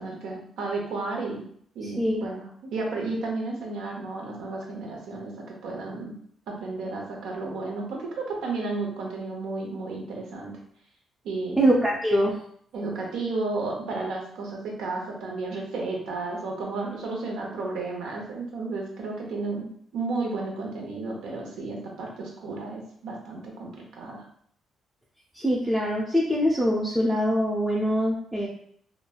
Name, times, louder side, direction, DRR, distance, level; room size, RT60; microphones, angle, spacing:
voice 1, 0.0-1.5 1.7-6.1 6.5-10.5 11.2-11.7 12.7-24.2, right 3 dB, 80° right, -1 dB, 0.8 m, -33 dB
voice 2, 1.8-2.3 11.6-12.4 25.3-28.5, equal, 5° right, -4 dB, 0.4 m, -23 dB
3.2 x 2.2 x 2.3 m, 0.63 s
cardioid pair, 90°, 0 cm